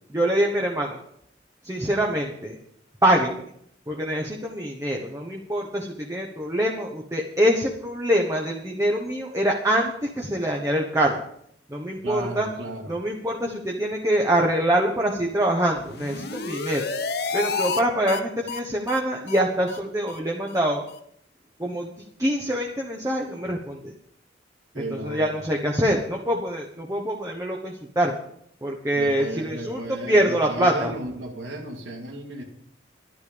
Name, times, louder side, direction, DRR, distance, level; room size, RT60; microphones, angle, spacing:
voice 1, 0.1-1.0 1.6-2.6 3.0-3.4 3.9-11.2 11.7-12.5 12.9-16.9 17.3-20.8 21.6-21.9 22.2-23.9 24.7-28.2 28.6-30.9, right 1 dB, 15° right, 0 dB, 1.3 m, -24 dB
voice 2, 12.0-12.9 24.7-25.2 28.9-32.4, right 1 dB, 85° right, -2 dB, 2.0 m, -34 dB
sound 1, 15.8-17.8 18.1-18.2 18.5-18.6 18.9-19.0 19.3-19.4 19.7-19.8 20.1-20.2 20.5-20.6 20.9-21.0, left 4 dB, 55° left, 1.0 m, -30 dB
11.5 x 11.5 x 5.3 m, 0.69 s
head